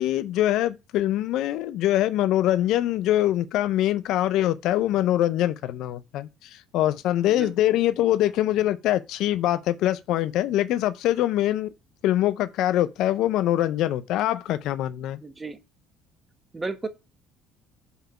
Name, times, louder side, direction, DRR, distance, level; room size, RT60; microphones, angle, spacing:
voice 1, 0.0-11.7 12.0-15.2, left 13 dB, 70° left, 0.5 m, -24 dB
voice 2, 7.3-7.8 15.2-15.6 16.5-16.9, right 3 dB, 20° right, 1.0 m, -34 dB
5.5 x 3.6 x 5.6 m
supercardioid pair, 90°, 0 cm